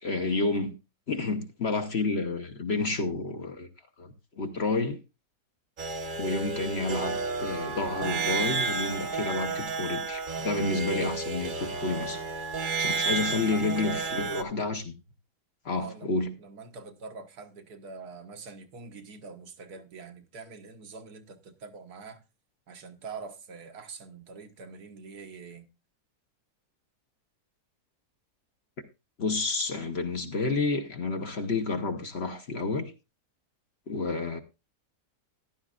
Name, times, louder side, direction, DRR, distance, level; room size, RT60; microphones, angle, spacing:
voice 1, 0.0-0.7 1.1-3.7 4.0-5.0 6.2-12.2 12.8-14.9 15.6-16.3 29.2-32.9 33.9-34.4, left 3 dB, 45° left, 1.1 m, -30 dB
sound 1, 5.8-14.4, right 4 dB, 40° right, 0.9 m, -31 dB
voice 2, 13.1-14.3 15.7-22.2 22.7-25.7, right 4 dB, 75° right, 1.6 m, -45 dB
14.5 x 11.0 x 2.4 m
omnidirectional pair, 1.7 m